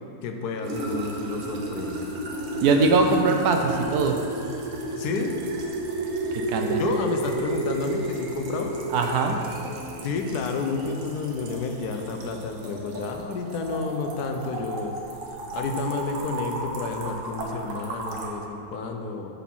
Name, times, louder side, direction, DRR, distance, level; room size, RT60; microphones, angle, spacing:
voice 1, 0.2-2.0 5.0-5.4 6.7-8.8 10.0-15.0 15.5-19.4, left 4 dB, 75° left, 4 dB, 1.2 m, -30 dB
sound 1, 0.6-18.3, right 2 dB, 60° right, 1.2 m, -33 dB
voice 2, 2.6-4.2 6.5-6.8 8.9-9.4, right 4 dB, 75° right, 4 dB, 1.1 m, -21 dB
8.1 x 4.1 x 5.9 m, 2.7 s
omnidirectional pair, 1.7 m